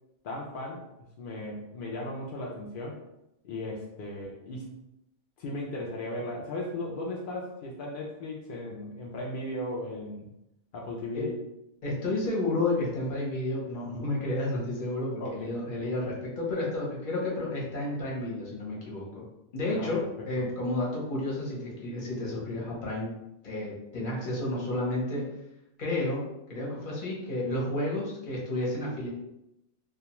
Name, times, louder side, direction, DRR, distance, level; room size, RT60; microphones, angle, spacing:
voice 1, 0.2-0.8 1.2-3.0 3.4-4.8 5.4-10.3 10.7-11.3 15.2-15.5 19.7-20.1 20.4-20.5, left 1 dB, 75° left, -2 dB, 0.4 m, -36 dB
voice 2, 11.8-19.2 19.5-23.1 23.4-25.3 25.8-29.1, left 2 dB, 45° left, -4 dB, 0.8 m, -31 dB
2.3 x 2.2 x 2.9 m, 0.86 s
omnidirectional pair, 1.4 m